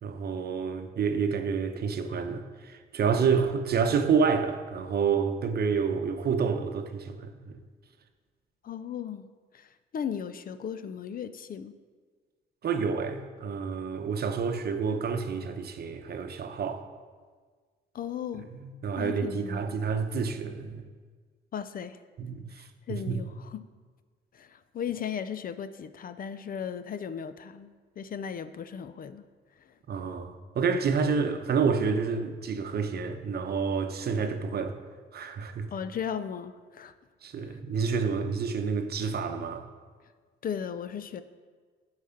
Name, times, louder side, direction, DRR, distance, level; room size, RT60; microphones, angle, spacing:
voice 1, 0.0-7.6 12.6-16.9 18.5-20.8 22.2-23.2 29.9-34.8 35.1-35.7 37.2-39.6, right 5 dB, 55° right, 0.8 m, -29 dB
voice 2, 8.6-9.3 9.5-11.7 17.9-18.5 19.0-19.8 21.5-22.0 22.6-23.6 24.3-29.3 29.6-29.7 35.7-36.9 37.5-37.6 40.4-41.2, left 8 dB, 45° left, 0.5 m, -36 dB
8.3 x 4.9 x 5.7 m
cardioid pair, 90°, 20 cm